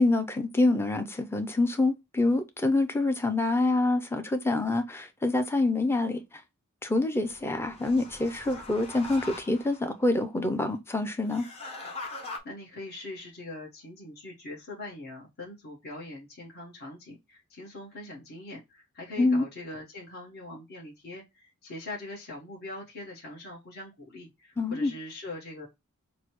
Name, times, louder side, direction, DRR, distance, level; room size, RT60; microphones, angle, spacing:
voice 1, 0.0-6.2 6.8-11.5 19.2-19.4 24.6-24.9, left 2 dB, 10° left, 0.5 m, -26 dB
sound 1, 7.2-9.9 11.2-12.4, left 2 dB, 30° left, 0.9 m, -42 dB
voice 2, 12.4-25.7, left 2 dB, 50° left, 1.3 m, -42 dB
6.4 x 2.1 x 3.0 m
head